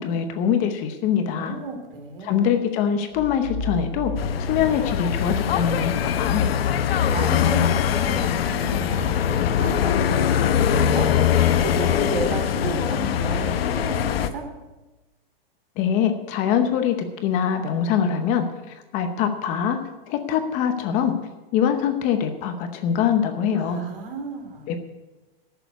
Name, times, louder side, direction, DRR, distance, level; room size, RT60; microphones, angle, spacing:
voice 1, 0.0-1.6 2.2-4.1 4.4-6.6 15.8-19.8 20.1-21.1 21.5-23.9 24.7-24.8, left 8 dB, 25° left, 7 dB, 0.9 m, -23 dB
voice 2, 1.3-2.5 7.1-11.1 11.6-14.5 23.5-24.7, right 4 dB, 65° right, 5 dB, 2.8 m, -34 dB
sound 1, 3.1-5.8, left 2 dB, 35° right, 4.0 m, -33 dB
sound 2, 4.2-14.3, left 9 dB, 75° left, 1.0 m, -22 dB
13.0 x 7.0 x 9.2 m, 1.1 s
supercardioid pair, 165°, 30 cm